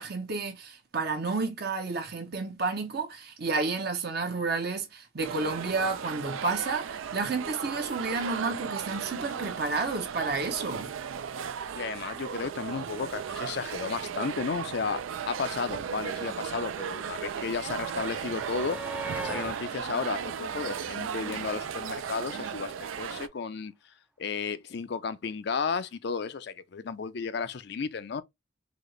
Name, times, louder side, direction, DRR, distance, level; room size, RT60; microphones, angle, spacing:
voice 1, 0.0-10.9, right 3 dB, 50° right, 0.7 m, -31 dB
sound 1, 5.2-23.3, right 7 dB, 85° right, 0.4 m, -36 dB
voice 2, 11.7-15.0 15.3-18.8 19.2-23.7 24.2-28.2, left 5 dB, 55° left, 0.4 m, -33 dB
sound 2, 16.1-21.5 22.7-22.8 23.1-23.2, right 2 dB, 5° right, 0.3 m, -43 dB
4.0 x 2.8 x 3.1 m
head